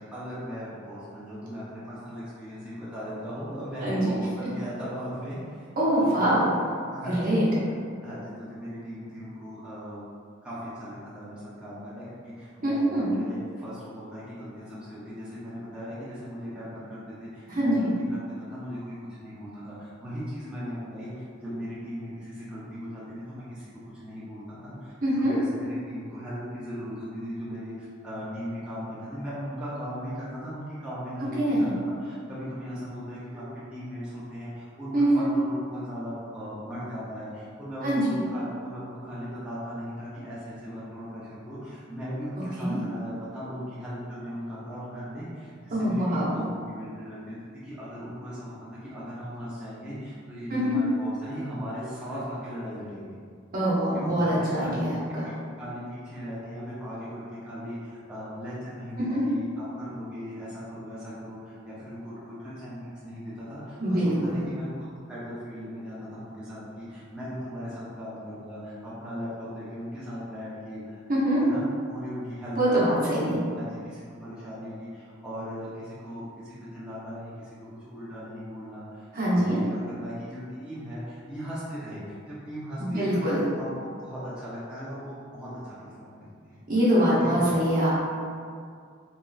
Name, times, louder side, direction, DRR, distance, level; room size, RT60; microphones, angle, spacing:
voice 1, 0.0-6.3 6.9-7.4 8.0-10.0 10.4-31.3 31.6-33.4 33.7-47.4 47.6-48.5 48.8-53.2 53.9-54.8 55.2-71.0 71.4-73.0 73.2-77.5 77.8-86.6 87.2-87.4, equal, 5° right, -11 dB, 0.5 m, -38 dB
voice 2, 5.8-6.5 7.1-7.4 12.6-13.1 17.5-17.8 25.0-25.4 31.4-31.7 34.9-35.3 37.8-38.0 42.3-42.8 45.7-46.5 50.5-50.8 53.5-55.3 59.1-59.2 63.8-64.4 71.1-71.4 72.6-73.4 79.1-79.6 82.8-83.4 86.7-87.9, right 1 dB, 45° right, -8 dB, 0.8 m, -24 dB
3.0 x 2.3 x 2.3 m, 2.2 s
head